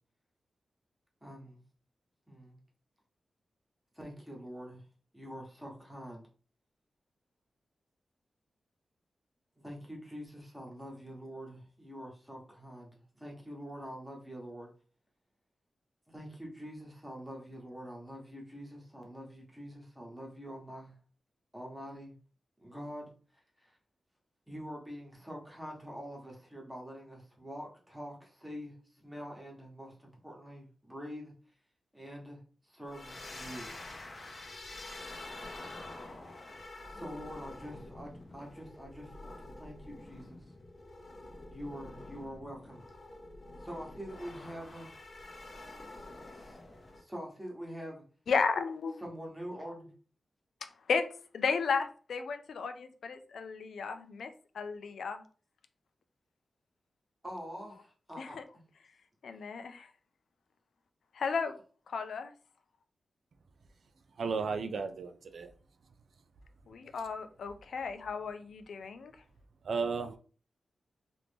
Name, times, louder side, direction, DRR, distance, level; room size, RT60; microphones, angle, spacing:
voice 1, 1.2-1.6 2.3-2.6 3.9-4.8 5.1-6.3 9.6-14.7 16.1-20.9 21.5-22.1 22.6-23.1 23.6-23.8 24.5-31.3 31.9-33.7 34.5-34.6 36.9-40.4 41.5-42.8 43.6-44.9 46.0-46.1 46.3-46.6 47.0-48.0 49.0-49.9 57.2-58.4, equal, 5° right, 1.1 m, -45 dB
sound 1, 32.8-47.0, left 2 dB, 35° left, 0.6 m, -47 dB
voice 2, 48.3-49.0 50.9-51.1 51.3-55.2 58.2-58.4 59.2-59.9 61.1-61.5 61.9-62.3 66.7-69.1, left 5 dB, 85° left, 0.4 m, -34 dB
voice 3, 64.2-65.5 69.6-70.2, right 5 dB, 65° right, 0.3 m, -34 dB
3.0 x 2.5 x 3.4 m
wide cardioid pair, 135°, 0 cm